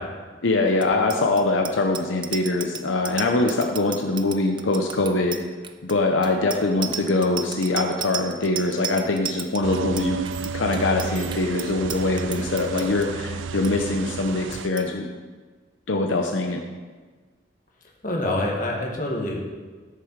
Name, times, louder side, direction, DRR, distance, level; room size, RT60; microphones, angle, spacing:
voice 1, 0.4-5.4 5.8-10.2 10.5-15.1 15.9-16.6, left 2 dB, 80° left, 3 dB, 0.8 m, -23 dB
Bicycle bell, 0.7-13.1 13.4-13.7 14.0-14.3 14.5-14.9, right 8 dB, 25° right, 0.4 m, -34 dB
sound 1, 9.6-14.7, right 5 dB, 85° right, 0.4 m, -32 dB
voice 2, 18.0-19.4, left 1 dB, 45° left, -1 dB, 1.9 m, -26 dB
13.0 x 6.9 x 4.7 m, 1.4 s
head